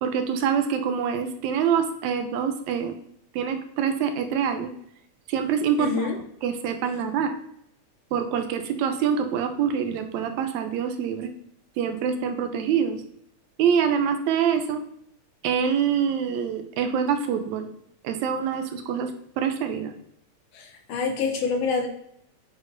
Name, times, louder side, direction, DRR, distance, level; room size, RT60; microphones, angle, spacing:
voice 1, 0.0-2.9 3.4-4.7 5.3-5.9 6.4-7.3 8.1-11.3 11.8-13.0 13.6-14.8 15.4-17.7 18.0-19.1 19.4-19.9, right 7 dB, 80° right, 7 dB, 2.0 m, -25 dB
voice 2, 5.8-6.2 20.5-21.9, left 4 dB, 70° left, 4 dB, 1.7 m, -26 dB
8.2 x 7.9 x 2.6 m, 0.73 s
omnidirectional pair, 3.3 m